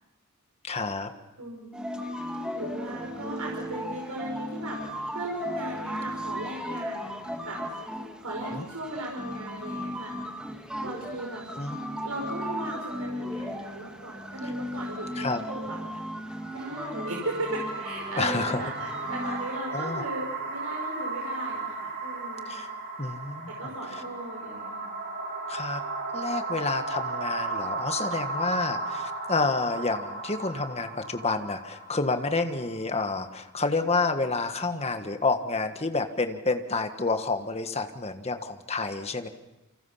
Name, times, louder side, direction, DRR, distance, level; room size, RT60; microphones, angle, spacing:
voice 1, 0.6-1.1 8.5-8.6 11.5-11.8 15.2-15.4 18.2-18.7 19.7-20.1 22.5-22.7 23.0-23.5 25.5-25.8 26.1-39.3, left 3 dB, 30° left, 7 dB, 1.5 m, -29 dB
voice 2, 1.4-2.0 2.5-4.8 5.1-7.6 8.2-10.2 10.8-11.4 12.0-15.8 16.5-22.6 23.6-24.9, right 1 dB, 80° right, -1 dB, 5.3 m, -37 dB
sound 1, 1.7-19.6, equal, 5° right, 1.8 m, -36 dB
sound 2, 16.3-33.5, right 3 dB, 50° right, 5.5 m, -35 dB
29.0 x 26.5 x 5.8 m, 1.0 s
head